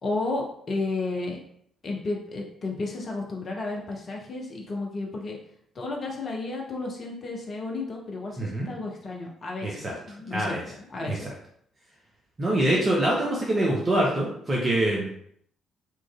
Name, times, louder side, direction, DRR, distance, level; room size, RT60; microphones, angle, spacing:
voice 1, 0.0-1.4 1.8-5.4 5.7-11.3, left 3 dB, 45° left, -1 dB, 0.6 m, -32 dB
voice 2, 9.6-9.9 10.3-10.6 11.0-11.2 12.4-15.1, right 1 dB, 35° right, -3 dB, 0.6 m, -24 dB
3.0 x 2.4 x 2.4 m, 0.69 s
figure-of-eight pair, 45°, 0 cm